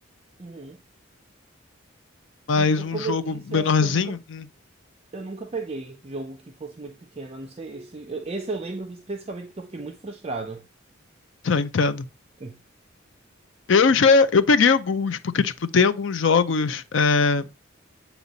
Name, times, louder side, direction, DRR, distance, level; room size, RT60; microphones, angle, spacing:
voice 1, 0.4-0.8 2.5-4.2 5.1-10.7 12.4-12.6, right 3 dB, 30° right, 0.5 m, -34 dB
voice 2, 2.5-4.5 11.4-12.1 13.7-17.4, left 5 dB, 65° left, 0.5 m, -20 dB
8.1 x 3.0 x 3.9 m
head